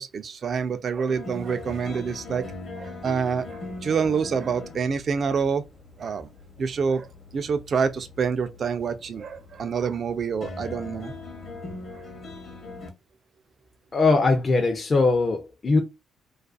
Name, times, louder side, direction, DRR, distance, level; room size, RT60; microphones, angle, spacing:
voice 1, 0.0-2.5 2.7-5.6 6.0-6.3 6.6-7.1 7.3-11.1, right 6 dB, 50° right, 0.4 m, -27 dB
sound 1, 1.1-12.9, left 2 dB, 50° left, 0.8 m, -41 dB
voice 2, 13.9-15.8, left 3 dB, 35° left, 0.5 m, -21 dB
2.4 x 2.3 x 2.4 m
cardioid pair, 90°, 0 cm